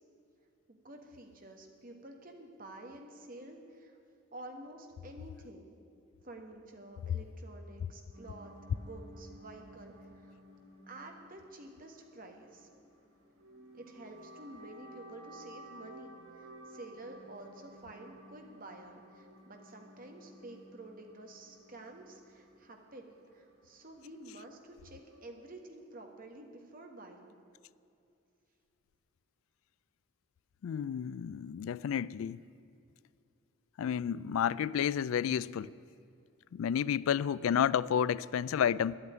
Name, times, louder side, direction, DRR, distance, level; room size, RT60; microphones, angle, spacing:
voice 1, 0.7-4.0 4.3-5.7 6.2-10.4 10.9-12.7 13.7-27.4, right 2 dB, 40° right, 1.5 m, -50 dB
sound 1, 8.1-25.3, right 1 dB, 90° right, 2.7 m, -55 dB
voice 2, 30.6-32.4 33.8-35.7 36.5-39.0, left 8 dB, 80° left, 0.3 m, -31 dB
11.0 x 8.7 x 9.2 m
head